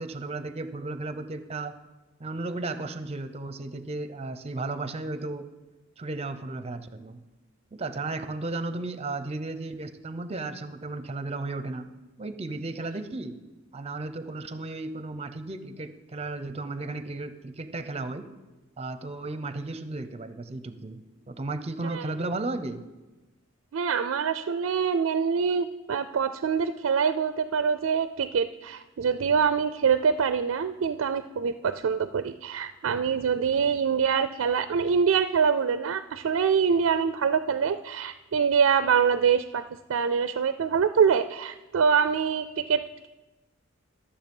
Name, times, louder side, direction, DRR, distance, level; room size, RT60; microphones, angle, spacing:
voice 1, 0.0-1.7 2.2-5.5 6.0-7.2 7.7-11.9 12.2-13.4 13.7-18.3 18.8-21.0 21.3-22.8, right 2 dB, 30° right, 11 dB, 0.6 m, -34 dB
voice 2, 23.7-39.6 39.9-43.1, right 6 dB, 85° right, 11 dB, 0.4 m, -25 dB
13.0 x 6.9 x 5.4 m, 1.1 s
head